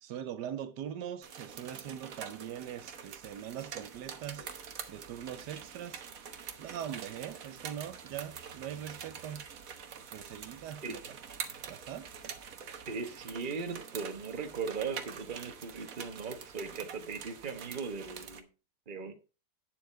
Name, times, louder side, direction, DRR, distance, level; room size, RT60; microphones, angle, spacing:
voice 1, 0.0-4.5 4.9-6.0 6.6-9.4 10.1-11.0 11.6-12.1 12.7-12.9, right 10 dB, 85° right, 1.4 m, -42 dB
sound 1, 1.2-18.4, right 7 dB, 60° right, 1.4 m, -45 dB
voice 2, 12.9-18.5 18.9-19.1, right 5 dB, 30° right, 1.2 m, -38 dB
9.3 x 7.1 x 4.5 m
omnidirectional pair, 1.8 m